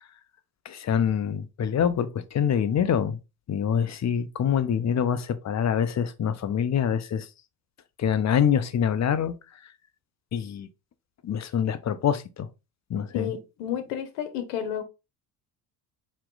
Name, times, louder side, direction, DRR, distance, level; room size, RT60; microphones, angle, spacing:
voice 1, 0.6-3.2 3.5-7.3 8.0-9.3 10.3-10.7 11.2-12.5 12.9-13.3, left 8 dB, 35° left, 0.7 m, -25 dB
voice 2, 13.1-14.8, left 9 dB, 80° left, 1.1 m, -31 dB
4.4 x 3.1 x 3.8 m
hypercardioid pair, 70°, 48 cm